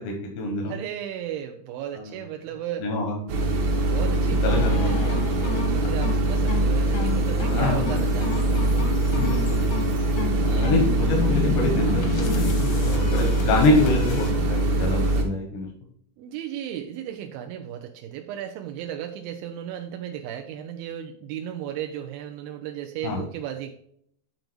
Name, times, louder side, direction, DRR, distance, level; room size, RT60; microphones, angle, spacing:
voice 1, 0.0-0.7 2.1-2.2 2.8-3.4 4.4-4.9 7.5-8.0 9.1-9.9 10.4-15.7 23.0-23.2, left 2 dB, 85° left, 1 dB, 3.5 m, -26 dB
voice 2, 0.6-2.9 3.8-8.9 10.4-10.9 16.2-23.7, right 10 dB, 85° right, 4 dB, 2.0 m, -35 dB
sound 1, 3.3-15.2, right 2 dB, 65° right, 1.9 m, -23 dB
sound 2, 4.5-14.3, left 6 dB, 70° left, 1.4 m, -32 dB
9.2 x 3.9 x 4.5 m, 0.67 s
omnidirectional pair, 4.8 m